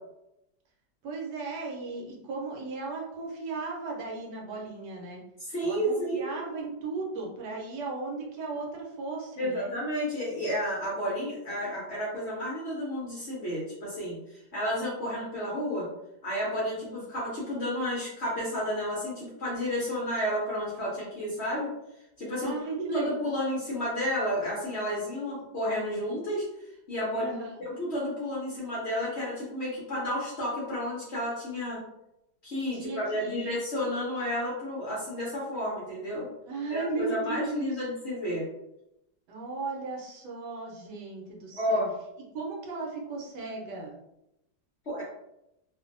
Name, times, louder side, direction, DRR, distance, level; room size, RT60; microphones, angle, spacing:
voice 1, 1.0-5.2 5.6-9.7 17.0-17.1 22.4-23.3 27.2-27.5 32.7-33.5 36.5-37.7 39.3-41.8 42.3-44.0, right 4 dB, 80° right, -1 dB, 1.2 m, -36 dB
voice 2, 5.4-6.3 9.4-15.9 16.2-21.7 22.2-22.5 22.9-26.4 26.9-31.8 32.4-36.3 36.7-38.4 41.6-41.9 44.9-45.0, equal, 55° left, -6 dB, 0.8 m, -31 dB
2.6 x 2.5 x 2.5 m, 0.86 s
omnidirectional pair, 1.9 m